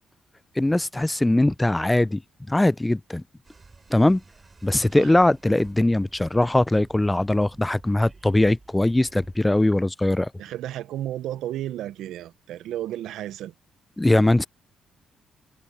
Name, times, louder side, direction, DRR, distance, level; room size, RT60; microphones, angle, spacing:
voice 1, 0.6-2.2 2.5-3.2 3.9-4.2 4.6-10.3 14.0-14.5, left 1 dB, 10° left, 0.3 m, -21 dB
sound 1, 3.4-9.4, right 3 dB, 30° right, 4.3 m, -51 dB
voice 2, 10.4-13.5, right 12 dB, 80° right, 0.6 m, -33 dB
cardioid pair, 90°, 0 cm